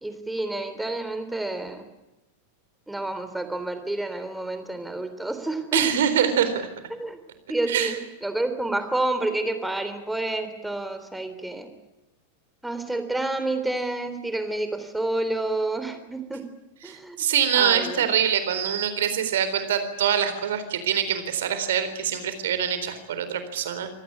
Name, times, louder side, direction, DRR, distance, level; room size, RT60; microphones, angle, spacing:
voice 1, 0.0-1.8 2.9-5.9 6.9-7.2 7.5-11.7 12.6-16.4 16.8-17.2 17.5-18.1, right 2 dB, 5° right, 8 dB, 3.6 m, -29 dB
voice 2, 5.7-6.6 7.7-8.0 16.8-23.9, right 8 dB, 60° right, 10 dB, 3.9 m, -24 dB
25.5 x 18.5 x 9.8 m, 0.98 s
figure-of-eight pair, 90°, 0 cm